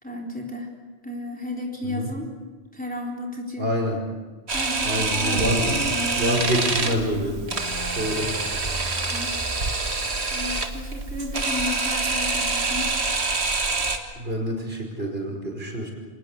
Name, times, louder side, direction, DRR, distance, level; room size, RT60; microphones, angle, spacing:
voice 1, 0.0-0.7 1.0-2.3 2.7-3.6 4.5-6.4 9.1-9.3 10.3-12.9, left 1 dB, 10° left, -1 dB, 3.8 m, -33 dB
voice 2, 3.6-4.0 4.8-5.8 6.2-8.3 14.2-15.9, equal, 65° right, 2 dB, 5.6 m, -27 dB
Camera, 4.5-14.0, right 3 dB, 80° right, 2.1 m, -26 dB
sound 1, 5.1-11.8, equal, 25° left, 3.5 m, -38 dB
26.5 x 19.5 x 8.1 m, 1.3 s
omnidirectional pair, 1.1 m